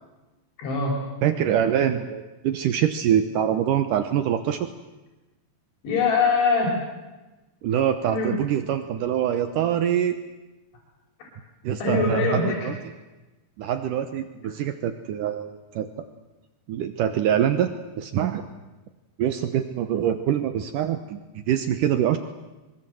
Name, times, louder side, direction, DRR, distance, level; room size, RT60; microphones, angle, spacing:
voice 1, 0.6-0.9 5.8-6.8 8.1-8.4 11.8-12.7, left 4 dB, 85° left, -2 dB, 7.3 m, -23 dB
voice 2, 1.2-4.7 7.6-10.2 11.6-12.8 13.6-15.9 16.7-18.4 19.2-22.2, right 9 dB, 85° right, 9 dB, 1.9 m, -24 dB
25.5 x 23.5 x 7.8 m, 1.1 s
omnidirectional pair, 5.2 m